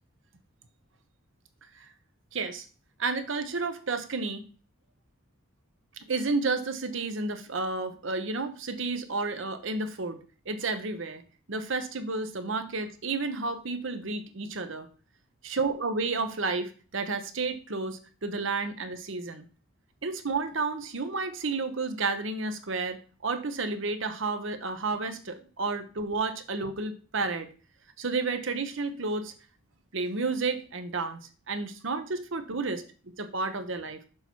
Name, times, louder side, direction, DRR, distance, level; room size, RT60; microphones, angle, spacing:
voice 1, 2.3-2.7 3.0-4.4 6.0-10.2 10.5-11.2 11.5-14.9 15.4-19.5 20.0-27.5 28.0-29.3 29.9-31.2 31.5-32.8 33.2-34.0, right 3 dB, 60° right, 9 dB, 0.9 m, -31 dB
6.8 x 5.5 x 4.5 m, 0.38 s
head